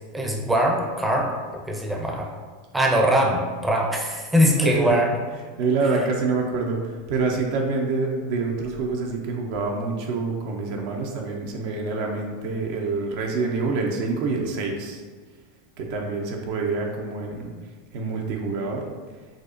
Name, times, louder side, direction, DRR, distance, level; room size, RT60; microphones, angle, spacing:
voice 1, 0.1-1.3 1.7-2.3 2.7-5.1, equal, 10° right, 0 dB, 0.5 m, -22 dB
voice 2, 4.4-15.0 15.8-17.5 17.9-18.9, right 3 dB, 60° right, 1 dB, 0.5 m, -26 dB
5.0 x 2.0 x 2.5 m, 1.5 s
hypercardioid pair, 90°, 0 cm